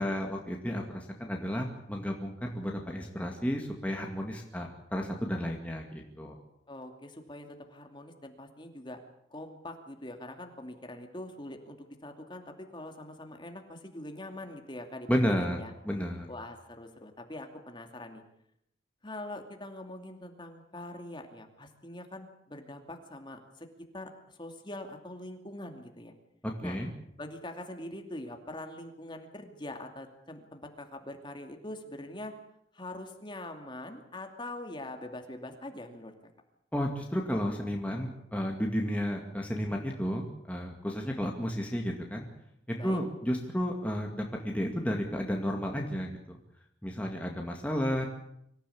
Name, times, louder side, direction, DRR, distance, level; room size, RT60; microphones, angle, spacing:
voice 1, 0.0-6.4 15.1-15.6 15.8-16.3 26.4-26.9 36.7-42.3 42.8-46.4 46.8-48.1, equal, 10° left, 0 dB, 2.1 m, -32 dB
voice 2, 6.7-9.0 9.3-15.1 15.4-15.7 16.3-18.2 19.0-23.7 23.9-26.1 26.6-26.8 27.2-32.3 32.7-36.1 42.8-43.0, left 1 dB, 25° left, 4 dB, 2.6 m, -43 dB
24.5 x 15.0 x 8.6 m, 0.75 s
head